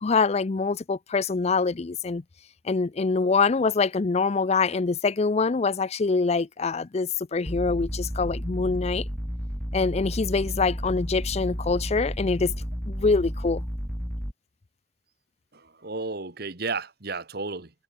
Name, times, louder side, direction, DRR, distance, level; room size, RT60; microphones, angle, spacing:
voice 1, 0.0-2.2 2.6-9.0 9.7-12.5 12.9-13.6, left 4 dB, 35° left, 0.5 m, -24 dB
sound 1, 7.5-14.3, equal, ahead, 1.9 m, -32 dB
voice 2, 15.5-17.7, right 3 dB, 60° right, 2.1 m, -33 dB
head